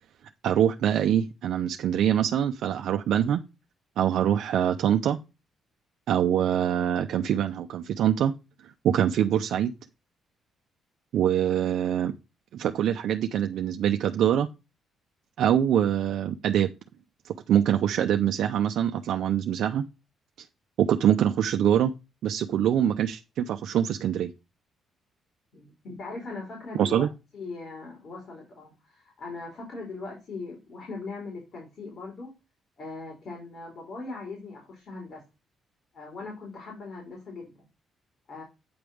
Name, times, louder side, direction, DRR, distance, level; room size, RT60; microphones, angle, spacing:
voice 1, 0.4-3.4 4.0-5.2 6.1-8.3 8.6-9.7 11.1-12.1 12.5-14.5 15.4-16.7 17.2-19.8 20.8-21.9 22.2-24.3 26.8-27.1, right 10 dB, 75° right, 4 dB, 0.6 m, -24 dB
voice 2, 25.5-27.1 27.3-32.3 32.8-35.2 35.9-37.7 38.3-38.4, left 3 dB, 55° left, 0 dB, 3.6 m, -40 dB
8.7 x 3.5 x 6.2 m, 0.26 s
cardioid pair, 90°, 0 cm